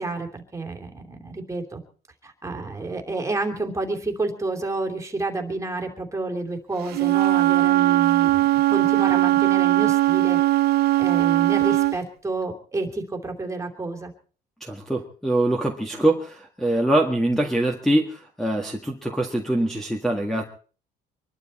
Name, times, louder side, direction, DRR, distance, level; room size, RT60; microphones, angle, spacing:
voice 1, 0.0-1.8 2.2-10.4 11.0-14.1, right 3 dB, 15° right, 4 dB, 3.0 m, -30 dB
Wind instrument woodwind instrument, 6.9-12.0, right 17 dB, 70° right, 0.7 m, -19 dB
voice 2, 14.6-20.4, right 1 dB, ahead, 3 dB, 1.8 m, -23 dB
25.0 x 12.0 x 4.3 m, 0.41 s
cardioid pair, 110°, 17 cm